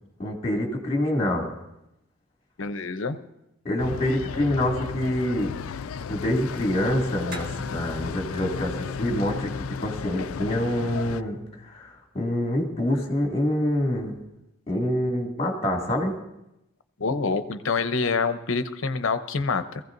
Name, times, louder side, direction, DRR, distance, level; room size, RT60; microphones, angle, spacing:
voice 1, 0.2-1.5 3.6-5.5 5.9-11.4 11.7-14.1 14.7-16.1, left 1 dB, 25° left, 0 dB, 2.3 m, -26 dB
voice 2, 2.6-3.2 17.0-19.8, left 4 dB, 70° left, 10 dB, 0.7 m, -26 dB
sound 1, 3.8-11.2, left 6 dB, 85° left, 0.4 m, -34 dB
sound 2, 7.3-12.1, equal, 45° right, 1.8 m, -45 dB
22.0 x 15.5 x 2.6 m, 0.87 s
head